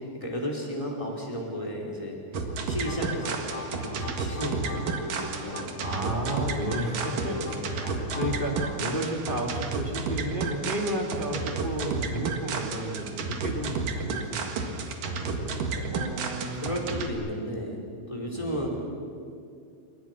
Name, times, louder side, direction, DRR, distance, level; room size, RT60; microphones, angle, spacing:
voice 1, 0.0-6.0 7.3-7.7 15.8-17.8 18.1-18.7, equal, 5° left, -2 dB, 4.3 m, -34 dB
sound 1, 2.3-17.1, right 4 dB, 55° right, 2.9 m, -32 dB
sound 2, 2.5-8.9, left 4 dB, 55° left, 4.2 m, -42 dB
voice 2, 5.8-7.4 7.7-15.9 18.3-18.6, right 1 dB, 25° right, 1 dB, 1.0 m, -32 dB
28.5 x 25.0 x 6.1 m, 2.4 s
omnidirectional pair, 5.3 m